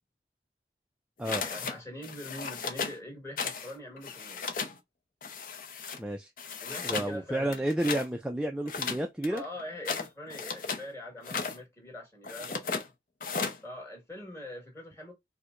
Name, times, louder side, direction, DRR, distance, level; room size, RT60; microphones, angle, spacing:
sound 1, 1.3-1.8 2.0-3.0 3.4-3.7 4.0-4.8 5.2-6.0 6.4-7.1 7.5-8.1 8.7-10.9 11.2-11.6 12.2-12.9 13.2-13.6, left 5 dB, 50° left, 0.6 m, -35 dB
voice 1, 1.3-4.4 6.6-7.7 9.3-12.9 13.6-15.1, left 1 dB, 15° left, 1.6 m, -43 dB
voice 2, 6.0-6.3 6.8-9.4, right 1 dB, 5° right, 0.3 m, -31 dB
4.5 x 2.1 x 2.5 m
head